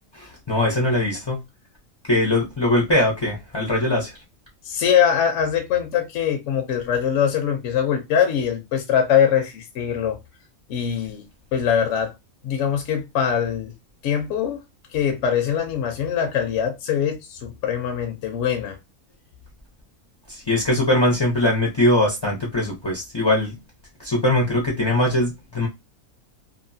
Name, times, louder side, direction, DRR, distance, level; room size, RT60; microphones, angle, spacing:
voice 1, 0.1-1.4 2.1-4.2 20.3-23.6 24.0-25.7, left 1 dB, 30° left, 0.4 m, -21 dB
voice 2, 4.6-10.2 10.7-11.3 11.5-12.1 12.4-13.7 14.0-14.6 14.9-18.8, left 8 dB, 65° left, 0.9 m, -22 dB
2.8 x 2.5 x 2.6 m
omnidirectional pair, 1.5 m